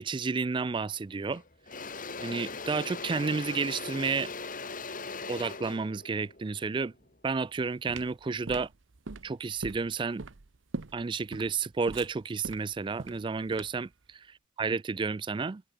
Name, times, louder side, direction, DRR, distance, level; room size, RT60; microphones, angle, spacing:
voice 1, 0.0-1.4 2.2-4.3 5.3-6.9 7.2-8.7 9.2-10.2 10.9-14.2 14.6-15.6, right 4 dB, 25° right, 0.3 m, -31 dB
Engine / Drill, 0.8-1.0 1.3-7.5, left 4 dB, 45° left, 3.5 m, -40 dB
sound 1, 7.4-13.9, right 3 dB, 70° right, 0.9 m, -42 dB
head